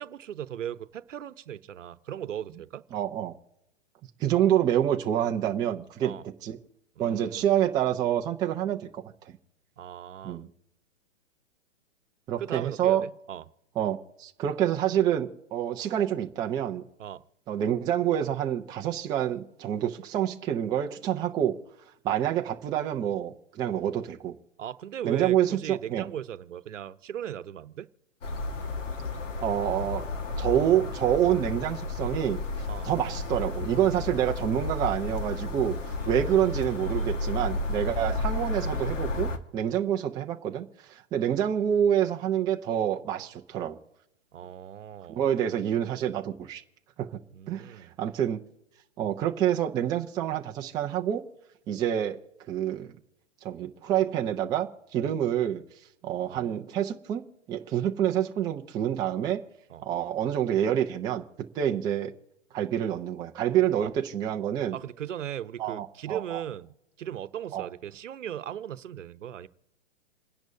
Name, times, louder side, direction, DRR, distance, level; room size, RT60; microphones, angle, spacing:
voice 1, 0.0-2.8 6.0-6.2 7.0-7.5 9.8-10.4 12.4-13.4 17.0-17.2 24.6-27.9 32.7-32.9 36.0-36.2 44.3-45.2 47.3-47.9 56.3-56.5 59.7-59.8 64.7-69.5, right 10 dB, 80° right, 0.9 m, -38 dB
voice 2, 2.9-3.3 4.2-6.1 6.4-6.6 7.0-9.0 10.2-10.5 12.3-13.0 13.8-16.8 17.5-21.6 22.0-24.4 25.0-26.1 29.4-30.1 30.4-32.4 32.8-35.8 36.1-43.8 45.1-46.6 47.0-47.2 47.5-48.4 49.0-51.2 51.7-52.2 52.5-52.9 53.4-55.6 56.0-59.4 59.8-61.2 61.5-62.1 62.5-64.8 65.6-66.4 67.5-67.7, right 10 dB, 10° right, 0.5 m, -27 dB
sound 1, 28.2-39.4, left 2 dB, 80° left, 1.7 m, -32 dB
28.5 x 10.5 x 2.7 m
hypercardioid pair, 135°, 37 cm